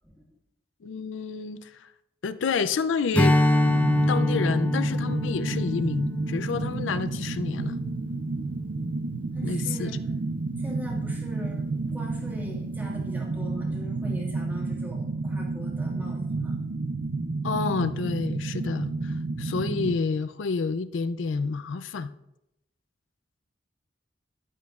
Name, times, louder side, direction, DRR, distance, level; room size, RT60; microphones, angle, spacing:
voice 1, 0.8-1.9 2.2-3.4 4.1-7.8 9.4-10.0 17.4-22.1, left 4 dB, 80° left, 12 dB, 0.4 m, -29 dB
Strum, 3.1-7.9, left 1 dB, 10° left, 0.6 m, -25 dB
sound 1, 3.6-20.0, right 3 dB, 75° right, 0.6 m, -31 dB
voice 2, 9.3-10.0 10.6-16.6, equal, 10° right, -2 dB, 1.8 m, -41 dB
13.0 x 10.5 x 2.4 m, 0.86 s
head